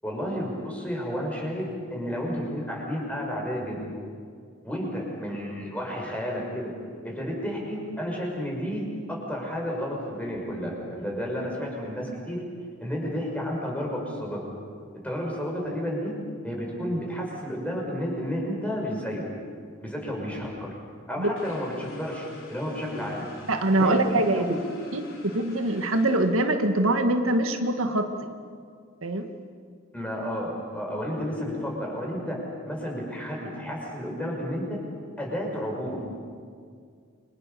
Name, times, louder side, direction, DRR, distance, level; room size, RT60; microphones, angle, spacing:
voice 1, 0.0-3.8 4.6-6.7 7.0-12.4 12.8-14.4 15.0-16.2 16.4-19.3 19.8-20.7 21.1-23.3 23.8-24.6 29.9-32.4 32.7-34.8 35.2-36.1, equal, 5° left, -1 dB, 6.1 m, -31 dB
sound 1, 21.4-26.9, left 2 dB, 65° left, 4.9 m, -49 dB
voice 2, 23.5-24.5 24.9-28.3 29.0-29.3, right 1 dB, 80° right, 6 dB, 1.8 m, -24 dB
29.5 x 25.5 x 6.9 m, 2.1 s
head